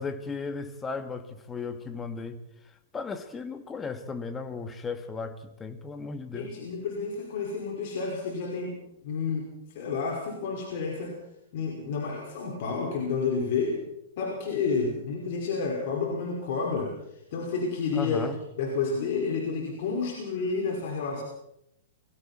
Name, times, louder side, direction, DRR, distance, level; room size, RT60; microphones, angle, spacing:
voice 1, 0.0-2.4 2.9-6.6 17.9-18.4, left 4 dB, 15° left, 9 dB, 1.9 m, -35 dB
voice 2, 6.3-8.8 9.0-9.4 9.7-11.1 11.5-13.8 14.2-16.9 17.3-18.2 18.6-21.2, left 4 dB, 50° left, 0 dB, 5.7 m, -30 dB
29.0 x 22.0 x 4.5 m, 0.78 s
figure-of-eight pair, 105°, 0 cm